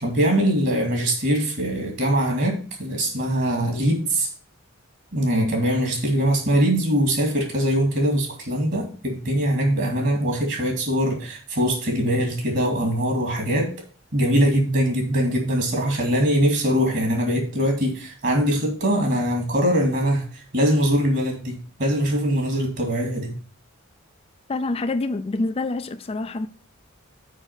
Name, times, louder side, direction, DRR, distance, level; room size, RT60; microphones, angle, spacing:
voice 1, 0.0-4.3 5.1-13.7 14.1-23.4, equal, 50° right, 2.3 m, -22 dB
voice 2, 24.5-26.5, left 2 dB, 25° left, 0.4 m, -26 dB
6.4 x 5.0 x 6.4 m
head